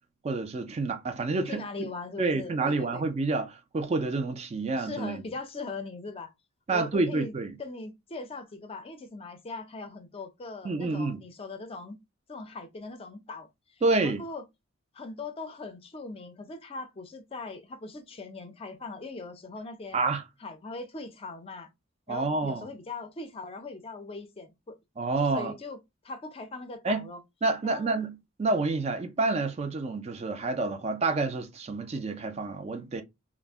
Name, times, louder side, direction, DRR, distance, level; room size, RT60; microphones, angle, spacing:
voice 1, 0.2-1.9 2.2-5.2 6.7-7.5 10.6-11.2 13.8-14.2 19.9-20.2 22.1-22.7 25.0-25.5 26.8-27.1 27.4-33.0, right 3 dB, 30° right, 0.3 m, -28 dB
voice 2, 1.5-3.0 4.8-6.3 6.7-7.3 7.6-12.0 12.3-13.5 14.0-14.4 14.9-20.0 20.4-21.7 22.1-24.8 25.2-25.8 26.0-27.2 27.6-28.0, left 3 dB, 25° left, 0.5 m, -40 dB
2.4 x 2.0 x 3.4 m
head